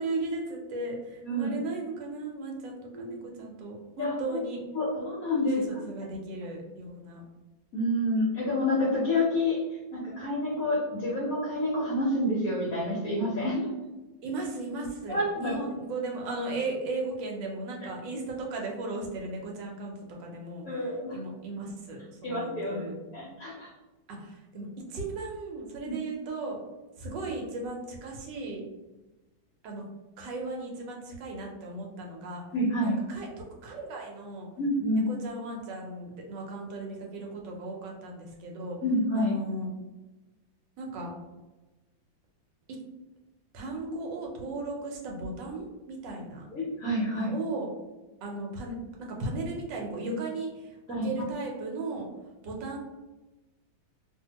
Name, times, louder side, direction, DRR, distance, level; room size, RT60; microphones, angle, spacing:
voice 1, 0.0-4.6 5.4-7.2 10.1-10.3 14.2-19.9 20.2-23.0 24.1-26.6 27.0-28.6 29.6-29.8 30.2-32.4 32.8-34.5 34.9-38.8 39.1-39.7 40.8-41.1 43.5-46.5 47.1-47.7 48.2-48.7 49.0-50.8 51.0-52.1 52.4-52.8, right 2 dB, 70° right, 0 dB, 1.3 m, -36 dB
voice 2, 4.7-5.6 7.7-13.6 15.0-15.5 20.7-21.2 22.2-22.8 23.1-23.7 32.5-33.0 34.6-35.0 38.8-39.3 46.5-47.3 50.9-51.1, left 1 dB, 60° left, -5 dB, 0.9 m, -28 dB
2.8 x 2.7 x 2.8 m, 1.1 s
omnidirectional pair, 2.2 m